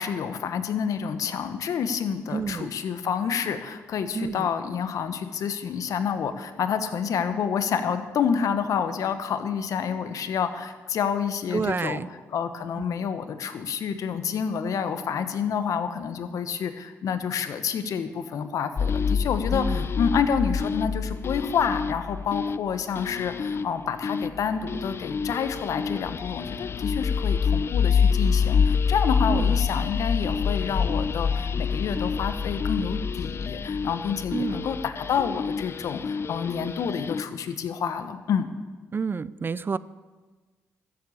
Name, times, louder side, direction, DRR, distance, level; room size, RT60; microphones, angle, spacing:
voice 1, 0.0-12.0 12.3-38.5, left 7 dB, 65° left, 10 dB, 1.2 m, -28 dB
voice 2, 2.3-2.7 4.1-4.5 11.5-12.1 12.8-12.9 19.5-19.9 29.3-29.5 34.3-34.7 38.9-39.8, right 5 dB, 35° right, 18 dB, 0.5 m, -29 dB
sound 1, 18.8-37.2, left 6 dB, 45° left, 0.5 m, -27 dB
13.5 x 8.0 x 8.6 m, 1.3 s
supercardioid pair, 60°, 6 cm